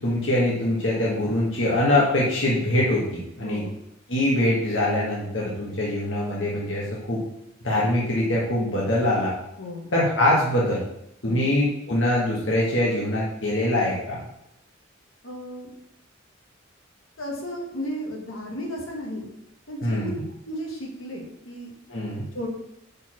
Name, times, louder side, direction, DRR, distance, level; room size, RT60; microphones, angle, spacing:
voice 1, 0.0-3.6 4.1-7.2 7.6-9.3 9.9-10.8 11.2-14.2 19.8-20.1 21.9-22.2, left 1 dB, 65° left, -5 dB, 1.4 m, -23 dB
voice 2, 3.4-3.7 9.6-9.9 11.2-11.5 15.2-15.7 17.2-19.3 19.7-20.1 20.4-21.7 22.3-22.5, equal, 80° left, -1 dB, 1.8 m, -34 dB
5.3 x 4.6 x 6.1 m, 0.83 s
head